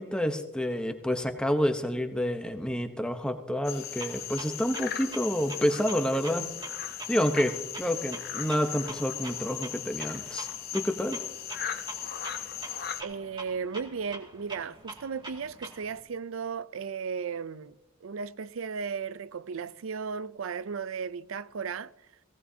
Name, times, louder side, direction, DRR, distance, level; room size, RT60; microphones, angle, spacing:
voice 1, 0.0-6.5 7.1-10.5 10.7-11.2, equal, 5° left, 0.9 m, -29 dB
sound 1, 3.6-13.0, left 9 dB, 50° left, 0.9 m, -37 dB
Clock, 4.0-16.0, right 2 dB, 25° right, 2.2 m, -46 dB
voice 2, 13.0-17.7 18.0-21.9, right 6 dB, 85° right, 0.5 m, -35 dB
17.5 x 17.0 x 2.8 m
head